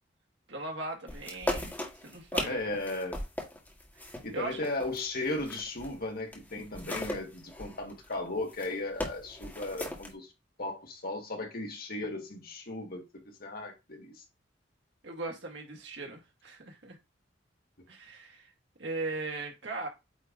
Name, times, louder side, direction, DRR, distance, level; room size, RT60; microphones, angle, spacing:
voice 1, 0.5-1.7 2.0-2.6 3.9-4.6 15.0-17.0 17.9-18.5 18.8-19.9, right 3 dB, 70° right, 2.2 m, -38 dB
sound 1, 1.1-6.0 6.3-10.1, left 1 dB, 10° left, 1.8 m, -38 dB
voice 2, 2.5-3.2 4.2-10.3 10.6-13.0 13.4-14.2, left 2 dB, 55° left, 1.7 m, -36 dB
8.9 x 3.3 x 3.9 m
head